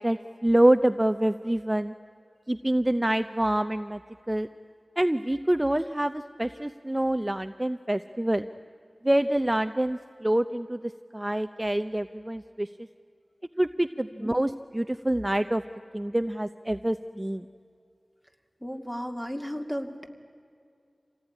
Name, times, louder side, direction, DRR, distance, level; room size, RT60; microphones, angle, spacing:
voice 1, 0.0-1.9 2.5-4.0 4.3-4.5 5.0-8.5 9.0-12.7 13.6-15.6 15.9-17.4, right 1 dB, 20° right, 9 dB, 0.7 m, -26 dB
voice 2, 18.6-20.1, equal, 10° left, 5 dB, 2.5 m, -34 dB
26.5 x 17.5 x 10.0 m, 2.4 s
wide cardioid pair, 45°, 0 cm